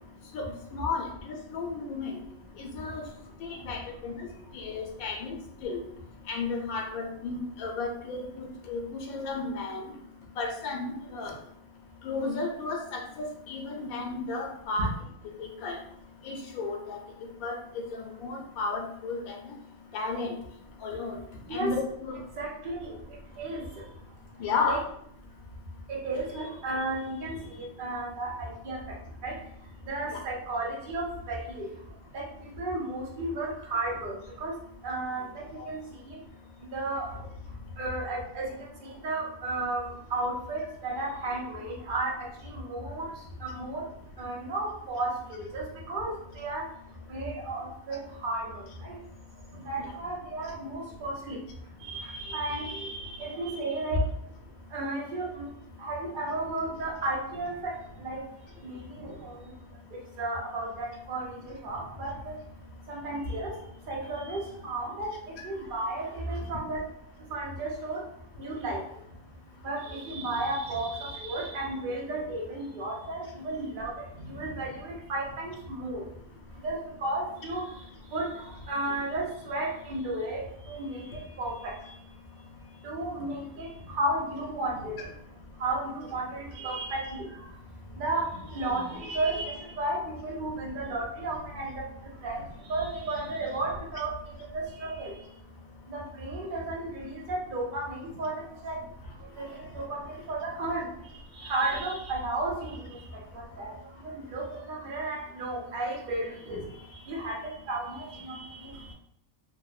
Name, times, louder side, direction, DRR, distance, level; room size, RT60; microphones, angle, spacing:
voice 1, 0.3-2.2 2.6-3.0 3.4-4.3 4.5-5.3 5.6-5.8 6.3-9.8 10.4-11.3 12.0-14.9 15.4-15.8 16.2-17.0 17.4-19.5 19.9-20.3 20.8-21.2 21.5-22.2 24.4-24.8 30.1-30.2, left 4 dB, 90° left, 1 dB, 1.0 m, -33 dB
voice 2, 22.4-22.9 23.4-23.7 24.6-24.8 25.9-28.8 29.2-29.3 29.8-31.7 32.1-32.3 32.6-34.5 34.8-35.8 36.1-36.2 36.7-37.2 37.8-38.6 38.8-42.2 42.4-43.1 43.4-43.9 44.2-46.7 47.1-48.9 49.6-51.4 51.8-54.0 54.7-55.5 55.8-57.7 58.0-58.2 58.6-59.5 60.2-62.4 62.9-63.6 63.9-65.1 65.4-66.8 67.3-68.0 68.4-68.8 69.6-76.0 76.6-77.7 78.1-81.7 82.8-85.1 85.6-87.5 88.0-91.8 92.2-92.4 92.7-94.1 94.5-95.1 95.9-98.8 99.4-100.9 101.3-103.0 103.6-103.7 104.1-106.7 107.1-108.7, right 2 dB, 50° right, -3 dB, 0.7 m, -33 dB
2.7 x 2.1 x 2.4 m, 0.71 s
omnidirectional pair, 1.5 m